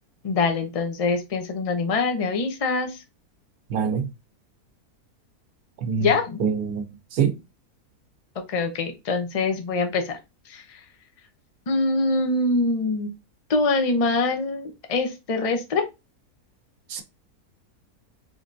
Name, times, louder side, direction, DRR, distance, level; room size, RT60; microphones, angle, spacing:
voice 1, 0.2-3.0 6.0-6.5 8.5-10.2 10.5-10.8 11.7-13.1 13.5-15.8, left 3 dB, 40° left, 0.5 m, -24 dB
voice 2, 3.7-4.1 5.8-6.1 6.4-7.4 16.9-17.0, right 6 dB, 75° right, 1.2 m, -25 dB
3.6 x 3.2 x 2.6 m
omnidirectional pair, 1.6 m